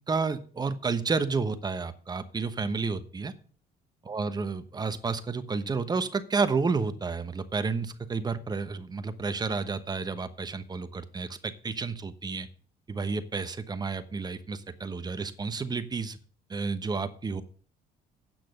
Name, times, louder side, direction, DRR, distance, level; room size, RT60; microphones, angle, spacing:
voice 1, 0.1-3.3 4.1-12.5 12.9-16.2 16.5-17.4, right 4 dB, 25° right, 11 dB, 1.0 m, -31 dB
8.8 x 6.0 x 7.8 m, 0.43 s
cardioid pair, 110°, 17 cm